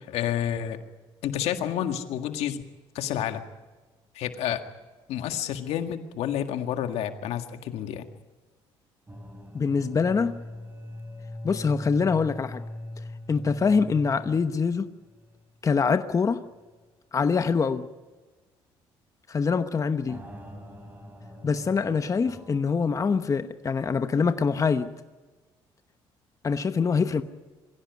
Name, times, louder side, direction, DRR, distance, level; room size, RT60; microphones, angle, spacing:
voice 1, 0.1-0.8 1.2-2.6 3.0-3.4 4.2-4.6 5.1-8.1, left 10 dB, 75° left, 1.8 m, -29 dB
sound 1, 9.1-15.6 15.9-16.0 16.6-16.7 20.1-22.6, left 1 dB, 15° right, 4.5 m, -42 dB
voice 2, 9.5-10.4 11.4-12.6 13.3-14.9 15.6-16.4 17.1-17.9 19.3-20.2 21.4-24.9 26.4-27.2, left 5 dB, 30° left, 1.0 m, -24 dB
22.5 x 16.5 x 9.4 m
cardioid pair, 90°, 11 cm